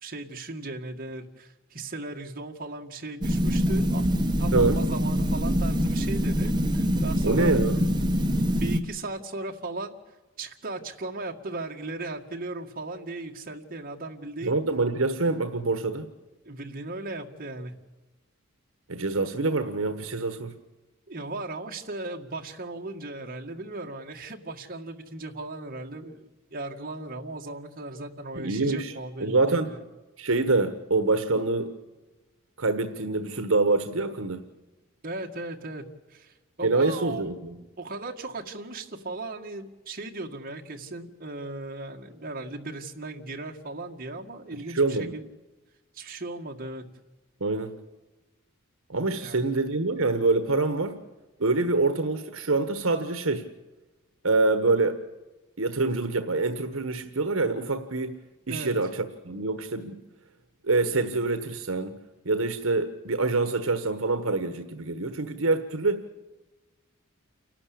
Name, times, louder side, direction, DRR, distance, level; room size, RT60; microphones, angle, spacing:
voice 1, 0.0-4.0 4.4-7.6 8.5-10.0 10.4-14.6 16.4-17.7 21.1-29.8 35.0-35.8 36.1-37.3 37.8-45.2 45.9-46.8 49.2-49.5 58.5-58.7, right 2 dB, 45° right, 2 dB, 2.0 m, -37 dB
sound 1, 3.2-8.8, equal, 20° right, 1.2 m, -24 dB
voice 2, 7.2-7.8 14.4-16.1 18.9-20.5 28.3-28.9 29.2-29.7 30.2-31.7 32.6-34.4 36.6-37.5 44.7-45.2 47.4-47.7 48.9-51.0 51.4-53.5 54.2-55.0 55.6-58.2 58.5-60.0 60.6-62.0 62.2-66.2, right 3 dB, 70° right, 9 dB, 1.3 m, -25 dB
28.5 x 12.5 x 8.6 m, 1.1 s
head